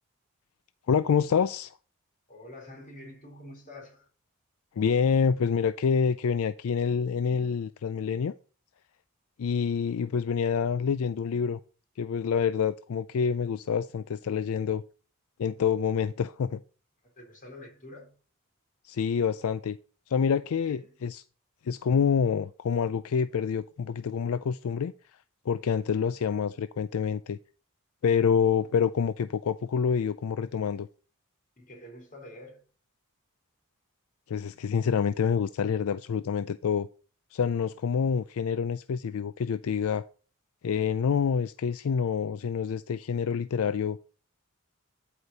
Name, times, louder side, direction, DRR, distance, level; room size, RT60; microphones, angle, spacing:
voice 1, 0.9-1.7 4.8-8.3 9.4-11.6 12.0-14.8 15.4-16.6 18.8-19.8 20.1-21.2 21.6-24.9 25.5-27.4 28.0-30.9 34.3-36.9 37.3-40.0 40.6-44.0, left 6 dB, 70° left, 0.4 m, -27 dB
voice 2, 2.3-4.1 17.0-18.2 20.7-21.0 31.6-32.6, left 1 dB, 40° left, 3.6 m, -47 dB
12.5 x 5.1 x 4.0 m
head